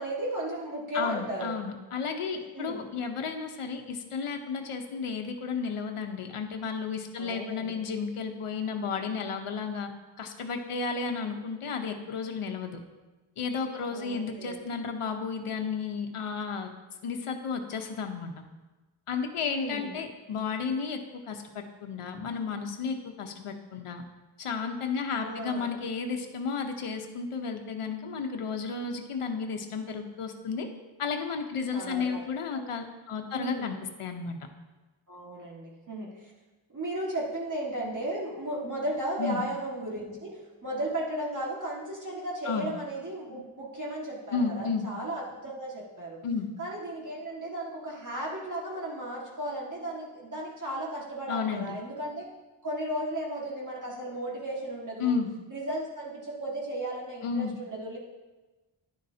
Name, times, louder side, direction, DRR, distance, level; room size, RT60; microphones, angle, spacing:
voice 1, 0.0-1.5 2.3-2.8 7.2-7.8 11.2-11.3 13.9-14.6 19.4-20.0 25.2-25.7 31.7-32.2 32.5-32.6 33.3-33.8 35.1-36.3 36.7-46.2 46.6-52.3 52.6-55.2 55.5-58.0, right 1 dB, 35° right, -5 dB, 1.9 m, -35 dB
voice 2, 0.9-9.9 10.2-12.8 13.4-16.7 17.0-18.3 19.1-24.0 24.4-30.7 31.0-34.4 39.2-39.4 42.4-42.7 44.3-44.9 46.2-46.5 51.3-51.7 55.0-55.3 57.2-57.5, left 5 dB, 90° left, 5 dB, 1.0 m, -33 dB
11.0 x 10.5 x 2.8 m, 1.2 s
wide cardioid pair, 125°, 50 cm